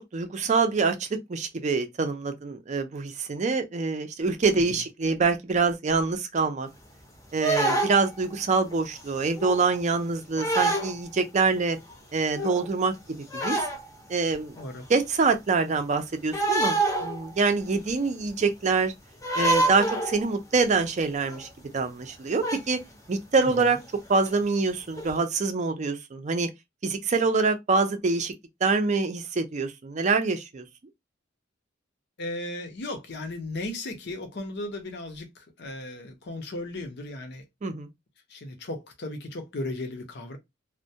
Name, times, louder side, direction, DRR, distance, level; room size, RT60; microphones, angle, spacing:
voice 1, 0.0-6.7 7.3-11.8 12.1-13.6 14.1-14.5 14.9-18.9 19.4-21.5 21.7-22.8 23.1-23.8 24.1-26.5 26.8-28.3 28.6-30.6 37.6-37.9, right 4 dB, 35° right, 0.4 m, -25 dB
sound 1, 7.4-8.2 8.7-9.0 9.4-9.7 10.4-11.0 11.6-11.7 11.9-12.0 12.3-12.7 13.3-13.9 14.6-14.7 16.3-17.4 17.7-17.8 19.2-20.3 20.9-21.0 21.2-21.5 22.4-22.6 23.5-23.7 24.2-24.4 25.0-25.2, right 2 dB, 15° left, 0.6 m, -27 dB
voice 2, 14.5-14.9 23.4-23.7 32.2-37.4 38.3-40.4, left 2 dB, 55° left, 0.6 m, -36 dB
2.2 x 2.1 x 2.6 m
head